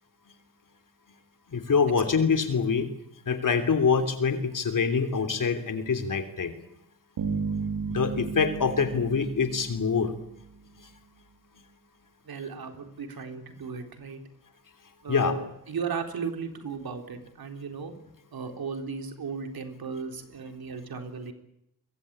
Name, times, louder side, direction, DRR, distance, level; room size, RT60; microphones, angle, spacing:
voice 1, 1.5-2.9 3.3-6.5 7.9-10.1 15.1-15.3, left 5 dB, 60° left, 8 dB, 3.3 m, -25 dB
sound 1, 7.2-10.6, right 5 dB, 90° right, 3.3 m, -34 dB
voice 2, 12.3-14.2 15.0-17.9 18.3-21.3, right 5 dB, 75° right, 5 dB, 3.9 m, -36 dB
23.5 x 22.5 x 8.9 m, 0.78 s
cardioid pair, 80°, 37 cm